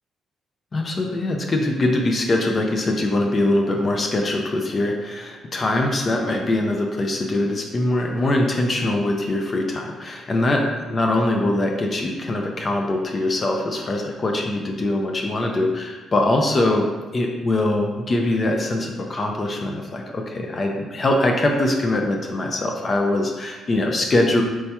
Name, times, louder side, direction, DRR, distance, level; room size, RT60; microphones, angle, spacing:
voice 1, 0.7-24.4, left 1 dB, 40° left, 2 dB, 0.4 m, -22 dB
4.4 x 2.8 x 2.2 m, 1.3 s
cardioid pair, 90°, 0 cm